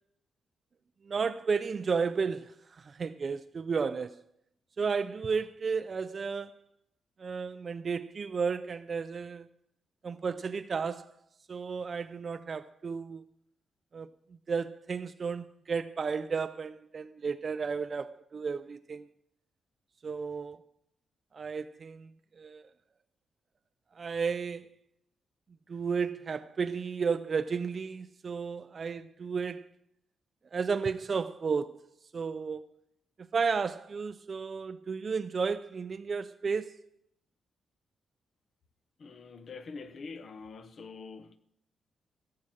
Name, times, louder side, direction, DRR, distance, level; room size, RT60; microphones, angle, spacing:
voice 1, 1.1-4.2 4.8-6.6 7.2-9.5 10.0-11.1 11.5-13.2 13.9-14.1 14.5-19.1 20.0-20.6 21.3-22.1 22.4-22.6 24.0-24.7 25.7-29.7 30.5-31.8 32.1-32.6 33.3-36.8, right 5 dB, 40° right, 0.5 m, -33 dB
voice 2, 39.0-41.4, left 4 dB, 50° left, 1.0 m, -45 dB
16.0 x 7.7 x 7.4 m
cardioid pair, 115°, 0 cm